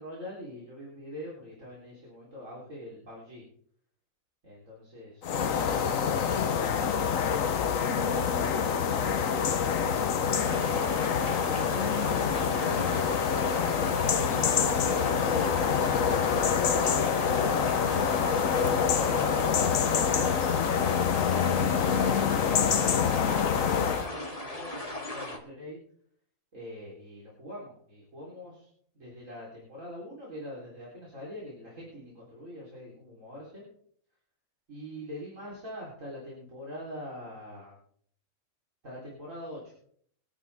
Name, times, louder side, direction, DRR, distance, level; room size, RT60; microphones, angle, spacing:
voice 1, 0.0-3.5 4.4-8.7 11.1-13.0 18.6-20.6 23.8-25.8 26.5-28.7 28.9-33.7 34.7-37.8 38.8-39.8, equal, 65° right, -5 dB, 4.0 m, -44 dB
sound 1, 5.2-24.1, left 7 dB, 75° left, 1.3 m, -26 dB
sound 2, 10.3-25.4, left 1 dB, 25° left, 2.2 m, -38 dB
23.5 x 9.5 x 3.5 m, 0.63 s
omnidirectional pair, 1.4 m